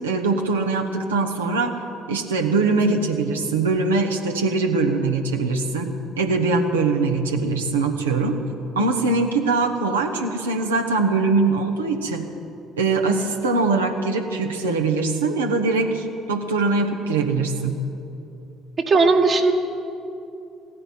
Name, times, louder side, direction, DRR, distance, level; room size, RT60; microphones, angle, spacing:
voice 1, 0.0-1.8 2.1-8.4 8.7-12.3 12.8-17.8, right 3 dB, 85° right, 3 dB, 1.2 m, -22 dB
voice 2, 18.8-19.5, right 3 dB, 40° right, 3 dB, 1.5 m, -17 dB
16.0 x 10.0 x 8.6 m, 2.8 s
hypercardioid pair, 55°, 0 cm